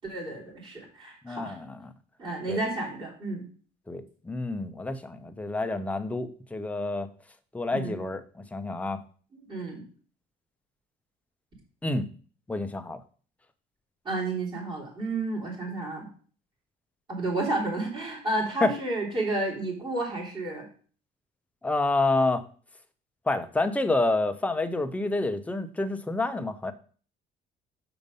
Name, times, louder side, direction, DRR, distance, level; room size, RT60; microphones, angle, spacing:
voice 1, 0.0-1.5 2.2-3.4 7.7-8.0 9.3-9.8 14.0-16.1 17.1-20.7, right 2 dB, 30° right, -4 dB, 3.3 m, -31 dB
voice 2, 1.2-1.9 2.5-2.6 3.9-7.1 7.5-9.0 11.8-12.1 12.5-13.0 18.6-18.7 21.6-22.4 23.3-26.7, left 2 dB, 10° left, 8 dB, 0.6 m, -28 dB
6.7 x 5.1 x 5.3 m, 0.42 s
cardioid pair, 155°, 17 cm